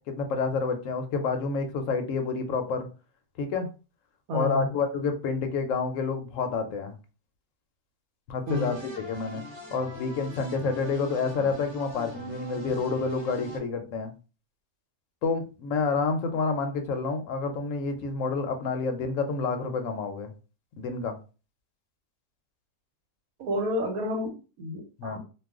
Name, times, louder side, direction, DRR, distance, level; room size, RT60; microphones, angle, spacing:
voice 1, 0.1-2.9 3.4-3.7 4.3-7.0 8.3-9.4 9.7-14.1 15.2-20.3 20.8-21.2 25.0-25.2, left 4 dB, 70° left, 6 dB, 0.9 m, -29 dB
voice 2, 4.3-4.7 8.5-8.7 23.4-25.2, left 1 dB, 85° right, 3 dB, 1.3 m, -30 dB
sound 1, 8.5-13.6, left 1 dB, 20° right, 0.9 m, -42 dB
2.4 x 2.3 x 3.5 m, 0.33 s
omnidirectional pair, 1.5 m